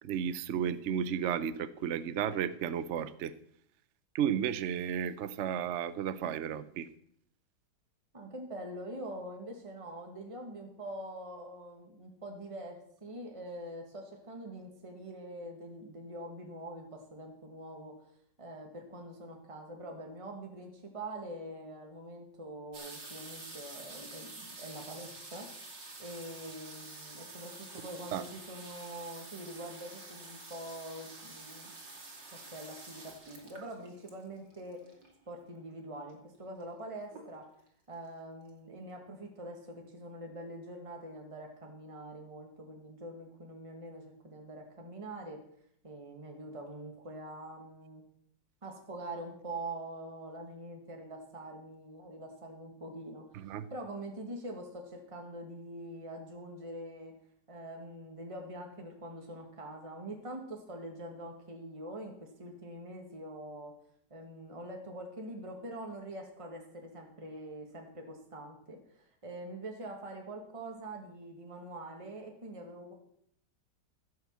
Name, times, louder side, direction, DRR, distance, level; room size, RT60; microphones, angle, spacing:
voice 1, 0.0-3.3 4.1-6.9 28.1-28.2 53.3-53.7, right 8 dB, 60° right, 14 dB, 0.8 m, -33 dB
voice 2, 8.1-18.1 18.4-25.5 26.0-31.7 32.3-34.9 35.3-37.5 37.9-45.4 45.8-48.0 48.6-57.1 57.5-63.7 64.1-72.9, right 1 dB, 20° right, 2 dB, 1.8 m, -44 dB
sound 1, 22.7-35.3 36.1-36.2 36.4-36.8 37.1-37.7 38.2-38.3 38.5-38.6, right 3 dB, 90° right, 3.4 m, -48 dB
16.0 x 6.4 x 7.5 m, 0.68 s
omnidirectional pair, 1.9 m